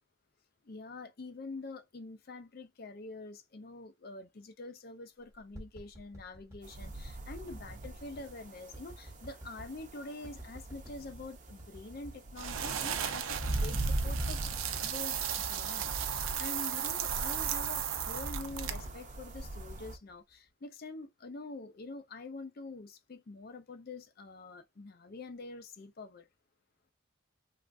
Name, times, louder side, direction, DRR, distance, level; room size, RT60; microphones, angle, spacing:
voice 1, 0.6-14.4 14.8-26.3, left 3 dB, 45° left, 0.5 m, -46 dB
sound 1, 5.3-6.7 7.7-8.3 8.7-9.8 10.2-11.0 11.5-12.2 12.5-12.6 12.8-13.6 14.0-15.0 15.3-16.0 16.6-19.7 20.1-20.5, right 1 dB, 15° right, 1.0 m, -51 dB
sound 2, 6.6-20.0, right 1 dB, 35° right, 0.6 m, -40 dB
sound 3, 12.4-18.9, right 9 dB, 85° right, 0.5 m, -36 dB
3.3 x 2.4 x 2.5 m
head